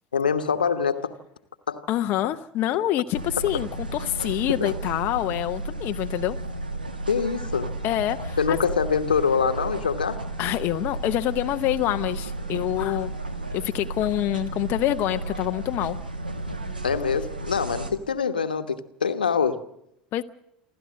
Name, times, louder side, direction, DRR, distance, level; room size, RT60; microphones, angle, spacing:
voice 1, 0.1-1.1 1.7-1.8 7.1-7.7 8.4-10.2 16.8-19.6, left 6 dB, 85° left, 1.1 m, -24 dB
voice 2, 1.9-6.4 7.8-8.6 10.4-13.1 13.5-16.0 20.1-20.2, left 14 dB, 50° left, 0.7 m, -26 dB
sound 1, 3.1-17.9, right 2 dB, 90° right, 1.6 m, -33 dB
28.0 x 12.5 x 7.5 m
figure-of-eight pair, 75°, 5 cm